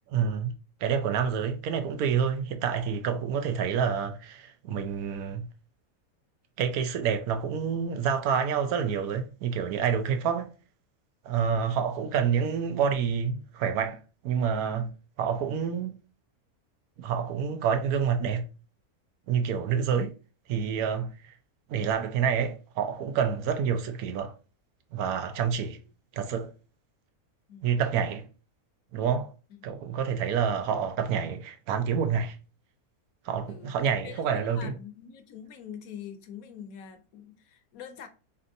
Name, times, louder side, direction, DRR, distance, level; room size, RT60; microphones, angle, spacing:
voice 1, 0.1-5.5 6.6-10.5 11.2-14.9 15.2-16.0 17.0-18.5 19.3-20.1 20.5-21.3 21.7-24.3 24.9-25.8 26.1-26.5 27.6-28.3 28.9-29.3 29.6-32.4 33.2-34.7, right 7 dB, 85° right, 1.1 m, -28 dB
voice 2, 34.0-38.1, left 8 dB, 75° left, 1.1 m, -45 dB
4.1 x 3.3 x 2.6 m
omnidirectional pair, 1.5 m